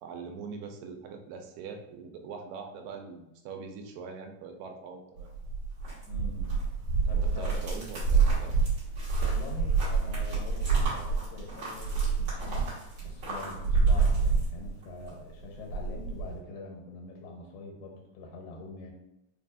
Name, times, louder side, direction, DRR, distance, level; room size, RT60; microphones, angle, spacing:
voice 1, 0.0-5.3 7.4-8.6, right 5 dB, 85° right, 4 dB, 2.2 m, -42 dB
sound 1, 5.2-15.1 15.4-16.3, right 4 dB, 45° right, 1.4 m, -27 dB
voice 2, 6.1-6.6 7.1-7.6 9.2-12.7 13.0-18.9, left 3 dB, 85° left, 0 dB, 2.6 m, -44 dB
5.3 x 2.3 x 2.5 m, 0.86 s
omnidirectional pair, 3.9 m